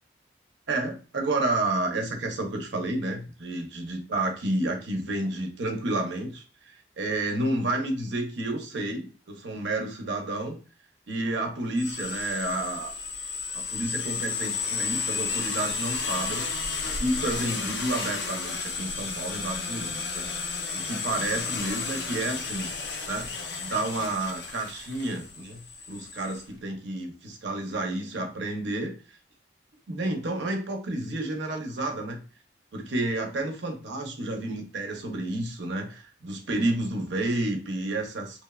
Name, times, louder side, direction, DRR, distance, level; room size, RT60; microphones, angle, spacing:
voice 1, 0.7-10.6 11.1-12.9 13.5-16.4 17.0-20.3 20.7-22.7 23.1-23.3 23.6-25.6 25.9-28.9 29.9-32.2 32.7-38.4, right 2 dB, 80° right, 2 dB, 0.6 m, -30 dB
sound 1, 11.8-26.4, left 5 dB, 70° left, 0.5 m, -32 dB
2.9 x 2.0 x 2.2 m, 0.37 s
head